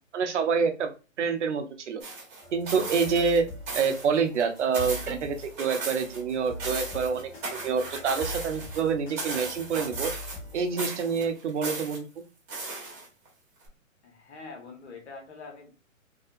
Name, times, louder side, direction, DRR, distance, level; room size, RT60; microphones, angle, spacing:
voice 1, 0.1-0.9 1.2-2.0 2.5-3.5 3.7-10.1 10.5-12.0, right 5 dB, 60° right, 7 dB, 0.7 m, -27 dB
sound 1, 2.0-3.4 3.7-4.1 4.4-6.2 6.5-8.8 9.2-10.5 10.8-12.0 12.5-13.3 13.7-13.8, right 3 dB, 25° right, 1.1 m, -36 dB
sound 2, 2.4-11.3, left 1 dB, 25° left, 1.2 m, -43 dB
sound 3, 5.0-5.4 10.0-10.3, right 6 dB, 5° right, 0.5 m, -44 dB
voice 2, 14.0-15.7, left 4 dB, 55° left, 3 dB, 1.0 m, -44 dB
2.6 x 2.2 x 2.6 m, 0.33 s
hypercardioid pair, 140°, 40 cm